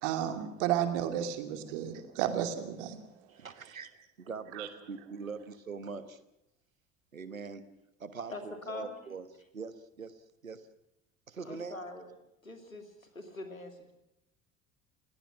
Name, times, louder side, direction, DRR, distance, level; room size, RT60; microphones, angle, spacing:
voice 1, 0.0-3.0 4.5-4.7, right 10 dB, 60° right, 7 dB, 2.7 m, -32 dB
voice 2, 3.3-3.9 4.2-6.2 7.1-7.6 8.0-9.2 9.5-10.7 11.3-11.8, right 5 dB, 85° right, 13 dB, 1.3 m, -42 dB
voice 3, 8.3-8.9 11.4-12.1 12.4-13.9, left 2 dB, 85° left, 6 dB, 2.6 m, -43 dB
29.0 x 17.0 x 6.1 m, 0.85 s
figure-of-eight pair, 60°, 40 cm